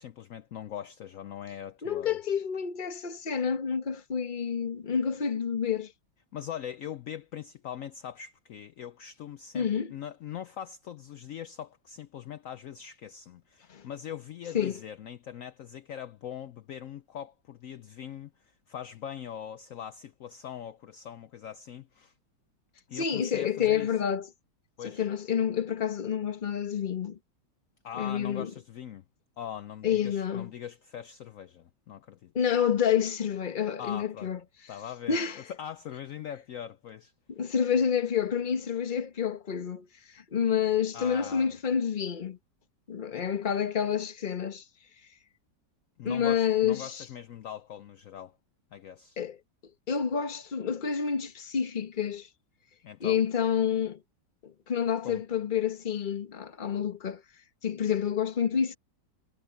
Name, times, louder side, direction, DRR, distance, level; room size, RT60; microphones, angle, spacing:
voice 1, 0.0-2.2 6.3-22.1 22.9-23.9 24.8-25.1 27.8-29.0 29.4-32.3 33.8-34.3 34.7-37.1 40.9-41.5 43.1-43.3 46.0-48.4 48.7-49.2 52.8-53.2 55.0-55.2, left 9 dB, 65° left, 0.8 m, -41 dB
voice 2, 1.8-5.9 9.5-9.9 13.7-13.8 14.5-14.8 22.9-24.3 24.8-27.2 28.0-28.5 29.8-30.5 32.3-34.4 35.1-35.4 37.3-39.9 40.1-42.4 42.9-44.6 46.0-47.0 49.2-49.4 49.9-52.3 53.0-54.0 54.4-57.2 57.6-58.8, left 8 dB, 30° left, 1.1 m, -28 dB
omnidirectional pair, 1.9 m